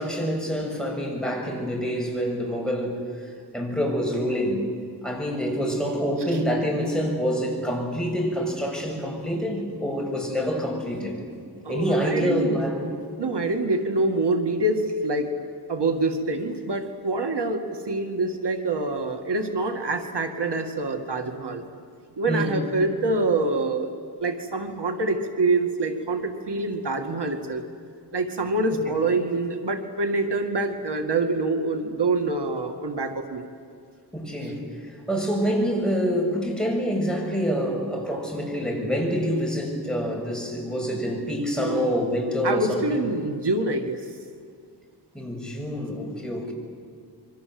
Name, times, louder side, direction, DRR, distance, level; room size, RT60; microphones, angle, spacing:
voice 1, 0.0-3.0 3.5-4.7 5.0-11.1 11.7-12.9 22.3-22.5 28.7-29.0 34.1-43.0 45.1-46.5, equal, ahead, 0 dB, 6.8 m, -26 dB
voice 2, 11.6-12.9 13.2-15.3 15.7-21.6 22.2-23.9 24.2-27.6 28.1-33.4 41.6-42.1 42.4-44.1, right 2 dB, 80° right, 5 dB, 2.1 m, -26 dB
28.0 x 23.5 x 7.8 m, 2.2 s
wide cardioid pair, 85°, 40 cm